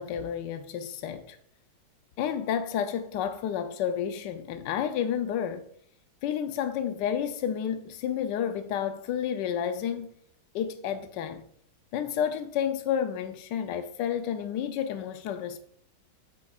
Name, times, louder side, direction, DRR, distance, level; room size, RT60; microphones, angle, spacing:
voice 1, 0.0-1.4 2.2-5.6 6.2-10.1 10.5-11.4 11.9-15.6, left 9 dB, 75° left, 1.2 m, -30 dB
7.8 x 7.1 x 2.4 m
omnidirectional pair, 2.0 m